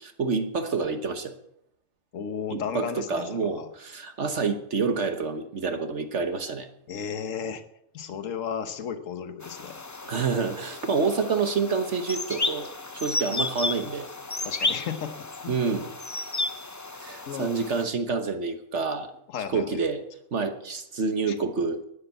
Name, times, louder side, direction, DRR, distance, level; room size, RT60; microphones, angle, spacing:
voice 1, 0.0-1.4 2.5-6.7 10.0-12.7 12.9-14.1 15.5-15.9 17.0-19.1 19.5-20.0 20.3-21.8, right 4 dB, 55° right, 8 dB, 1.4 m, -28 dB
voice 2, 2.1-3.7 6.9-7.6 7.9-9.8 14.4-15.5 17.3-17.5 19.3-19.8 21.3-21.4, left 7 dB, 65° left, 9 dB, 1.5 m, -34 dB
sound 1, 9.4-17.8, left 2 dB, 20° left, 0.4 m, -33 dB
11.5 x 10.5 x 8.1 m, 0.74 s
omnidirectional pair, 1.4 m